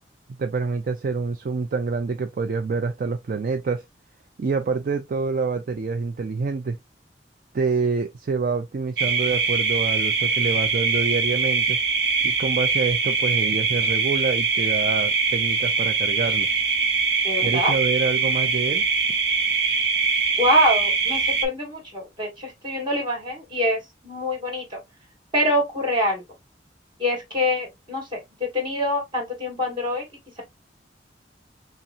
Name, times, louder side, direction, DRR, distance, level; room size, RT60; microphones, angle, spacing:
voice 1, 0.4-3.8 4.4-6.8 7.5-11.8 12.2-16.5 17.4-18.9, right 4 dB, 50° right, 0.4 m, -26 dB
sound 1, 9.0-21.5, right 5 dB, 70° right, 0.8 m, -23 dB
voice 2, 17.2-17.7 20.4-23.8 24.0-24.8 25.3-26.2 27.0-30.0, equal, 25° right, 1.9 m, -24 dB
5.6 x 2.0 x 2.5 m
head